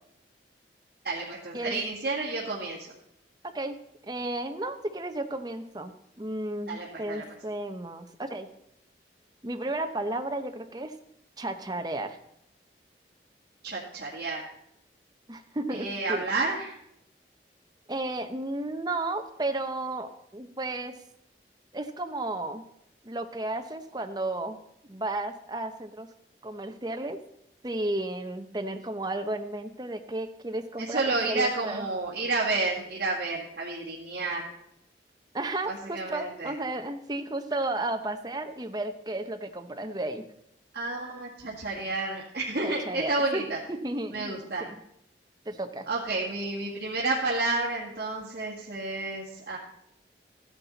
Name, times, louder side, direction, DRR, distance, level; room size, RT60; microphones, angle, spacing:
voice 1, 1.0-2.9 6.7-7.2 13.6-14.5 15.7-16.8 30.8-34.4 35.7-36.5 40.7-43.6 44.1-44.7 45.9-49.6, right 3 dB, 55° right, -7 dB, 2.1 m, -30 dB
voice 2, 3.4-3.8 4.0-8.5 9.4-10.9 11.4-12.2 15.3-16.3 17.9-20.9 21.7-22.6 23.0-24.6 24.9-26.1 26.4-27.2 27.6-31.9 35.3-40.2 42.6-44.3 44.6-44.8 45.5-45.9, right 2 dB, 25° right, 7 dB, 0.8 m, -33 dB
14.0 x 9.8 x 4.0 m, 0.76 s
head